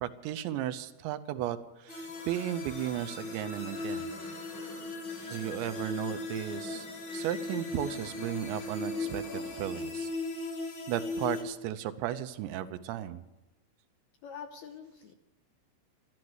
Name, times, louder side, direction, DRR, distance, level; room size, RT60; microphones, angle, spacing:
voice 1, 0.0-4.1 4.6-4.7 5.2-6.9 7.1-10.1 10.9-13.2, right 12 dB, 80° right, 10 dB, 3.0 m, -35 dB
sound 1, 1.9-11.4, left 3 dB, 60° left, 1.3 m, -38 dB
sound 2, 2.0-10.5, left 1 dB, 35° left, 2.5 m, -49 dB
voice 2, 14.2-15.1, left 6 dB, 75° left, 6 dB, 2.4 m, -45 dB
13.0 x 12.0 x 7.9 m, 0.96 s
omnidirectional pair, 5.2 m